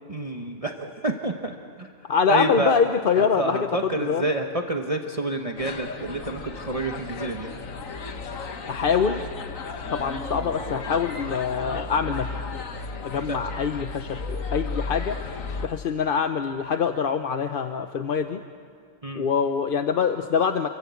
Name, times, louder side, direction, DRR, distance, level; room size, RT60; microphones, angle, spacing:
voice 1, 0.1-1.9 2.3-2.7 3.2-7.5 13.3-13.4 19.0-19.3, right 2 dB, 25° right, 3 dB, 1.2 m, -28 dB
voice 2, 2.1-4.3 8.7-9.2 9.9-12.3 13.0-15.2 15.6-18.4 19.2-20.7, left 6 dB, 45° left, 7 dB, 0.9 m, -24 dB
sound 1, 5.6-15.7, left 3 dB, 70° left, 1.8 m, -34 dB
28.5 x 23.0 x 8.4 m, 2.4 s
omnidirectional pair, 1.4 m